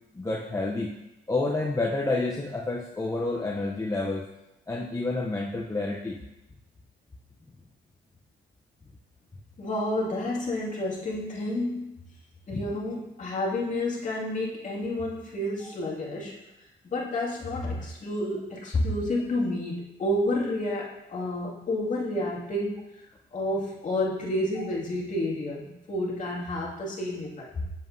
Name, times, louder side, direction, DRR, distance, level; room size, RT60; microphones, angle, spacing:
voice 1, 0.1-0.9 1.3-4.2 4.7-6.2, left 2 dB, 15° left, -2 dB, 0.7 m, -29 dB
voice 2, 9.6-11.9 12.5-16.4 16.9-22.8 23.3-27.6, left 1 dB, 40° left, -5 dB, 2.2 m, -30 dB
7.5 x 7.3 x 2.7 m, 0.91 s
cardioid pair, 90°, 20 cm